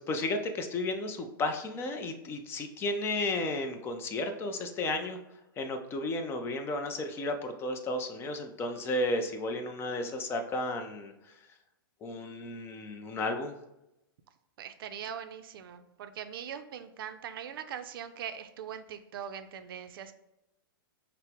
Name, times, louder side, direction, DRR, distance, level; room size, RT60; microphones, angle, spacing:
voice 1, 0.0-5.2 5.6-11.1 12.0-13.5, left 2 dB, 20° left, 6 dB, 0.4 m, -33 dB
voice 2, 14.6-20.1, right 8 dB, 70° right, 10 dB, 0.4 m, -41 dB
5.5 x 2.0 x 3.5 m, 0.90 s
hypercardioid pair, 140°, 12 cm